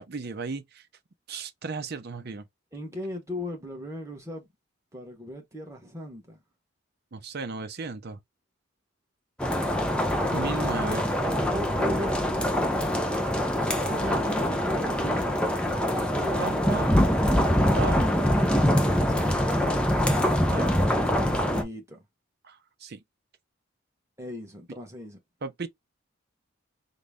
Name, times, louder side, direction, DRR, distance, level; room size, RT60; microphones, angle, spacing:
voice 1, 0.1-0.8 1.3-2.4 7.1-8.2 10.3-11.0 13.9-14.2 16.4-16.9 17.7-18.0 20.5-20.7 22.4-23.0 25.4-25.7, right 4 dB, 50° right, 0.6 m, -35 dB
voice 2, 2.7-4.5 4.9-6.4 10.3-10.7 11.2-13.0 13.9-15.4 16.2-16.8 18.6-19.5 21.3-22.0 24.2-25.2, left 1 dB, 15° right, 1.0 m, -38 dB
sound 1, 9.4-21.6, equal, 5° left, 0.5 m, -24 dB
3.9 x 2.0 x 3.4 m
head